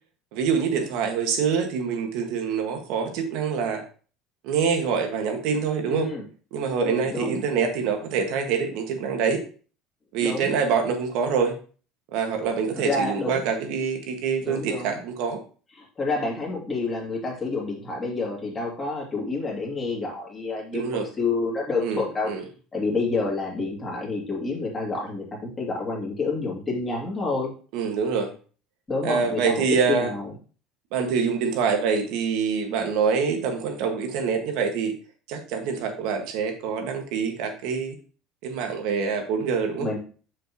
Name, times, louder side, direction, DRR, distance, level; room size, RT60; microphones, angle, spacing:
voice 1, 0.3-3.8 4.4-6.1 6.5-9.4 10.1-11.5 12.1-15.4 20.7-21.1 21.8-22.4 27.7-28.3 29.0-30.1 30.9-34.9 35.3-38.0 38.4-39.9, right 6 dB, 65° right, 4 dB, 1.8 m, -25 dB
voice 2, 5.8-6.2 6.8-7.4 10.2-10.5 12.8-13.4 14.4-15.0 15.8-22.3 22.7-27.5 28.9-30.3 39.8-40.0, left 3 dB, 20° left, -2 dB, 2.4 m, -29 dB
7.5 x 6.4 x 3.0 m, 0.38 s
cardioid pair, 155°, 0 cm